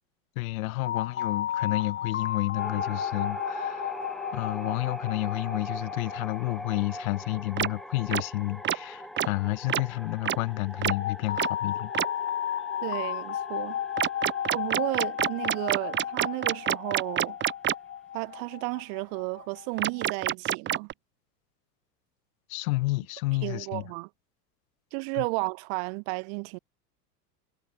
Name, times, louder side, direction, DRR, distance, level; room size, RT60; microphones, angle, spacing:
voice 1, 0.4-4.0 4.3-11.9 22.5-23.9 25.1-25.3, left 21 dB, 55° left, 4.2 m, -30 dB
sound 1, 0.8-9.7 10.9-20.1, left 10 dB, 25° left, 1.2 m, -34 dB
sound 2, 2.6-18.5, equal, ahead, 5.6 m, -42 dB
sound 3, 7.6-7.7 8.1-8.2 8.6-8.8 9.2-9.3 9.7-9.8 10.3-10.4 10.8-10.9 11.4-11.5 11.9-12.1 14.0-17.7 19.8-20.9, right 11 dB, 20° right, 1.0 m, -26 dB
voice 2, 12.8-13.8 14.5-17.4 18.1-20.9 23.4-24.1 24.9-26.6, right 40 dB or more, 50° right, 3.9 m, -33 dB
figure-of-eight pair, 80°, 49 cm